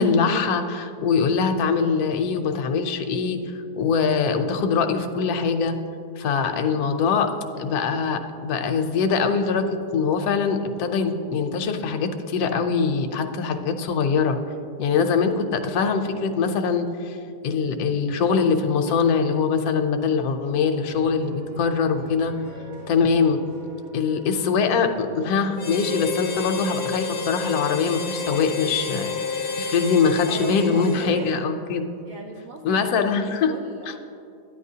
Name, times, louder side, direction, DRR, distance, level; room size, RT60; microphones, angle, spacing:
voice 1, 0.0-5.8 6.2-7.3 7.6-14.4 14.8-17.2 17.4-22.4 22.9-23.4 23.9-29.1 29.6-31.8 32.6-33.5 33.8-34.0, left 5 dB, 70° left, 6 dB, 1.1 m, -23 dB
sound 1, 20.7-24.9, right 1 dB, 90° right, 2.7 m, -45 dB
Wind instrument woodwind instrument, 22.1-32.2, right 1 dB, 10° right, 0.7 m, -45 dB
Harmonica, 25.6-31.5, left 5 dB, 50° left, 0.6 m, -30 dB
voice 2, 30.3-31.5 32.0-34.0, right 3 dB, 65° right, 0 dB, 0.9 m, -39 dB
13.0 x 10.0 x 2.8 m, 2.5 s
omnidirectional pair, 1.8 m